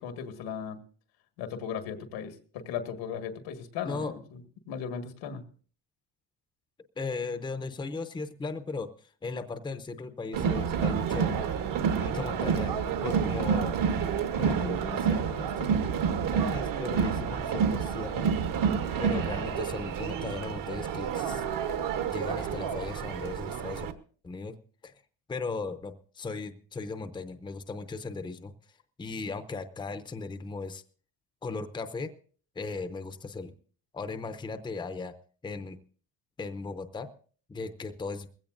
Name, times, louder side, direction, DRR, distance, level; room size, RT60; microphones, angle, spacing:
voice 1, 0.0-0.8 1.4-4.4 4.7-5.4 19.2-19.5, left 7 dB, 85° left, 7 dB, 1.9 m, -37 dB
voice 2, 7.0-8.9 9.2-11.3 12.0-13.8 14.4-15.8 16.3-18.3 19.0-21.4 22.1-23.9 24.2-24.6 24.8-24.9 25.3-28.5 29.0-30.8 31.4-32.1 32.6-33.5 33.9-35.1 35.4-35.8 36.4-37.1 37.5-38.3, left 3 dB, 10° left, 10 dB, 0.7 m, -37 dB
Crowd, 10.3-23.9, right 7 dB, 50° right, 1.1 m, -29 dB
20.5 x 16.0 x 2.5 m, 0.42 s
cardioid pair, 140°, 43 cm